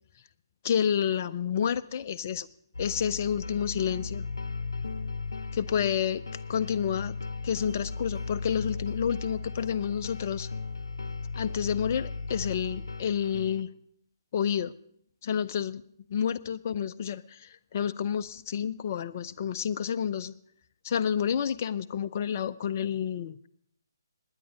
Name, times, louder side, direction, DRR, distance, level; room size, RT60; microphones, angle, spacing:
voice 1, 0.6-2.5 2.8-4.3 5.5-6.2 6.5-7.2 7.4-10.5 11.4-13.7 14.3-14.7 15.2-15.8 16.1-20.3 20.8-23.4, left 8 dB, 35° left, 12 dB, 0.6 m, -29 dB
sound 1, 2.7-13.6, left 3 dB, 65° left, 0.7 m, -36 dB
20.0 x 9.8 x 5.1 m, 0.69 s
figure-of-eight pair, 140°, 2 cm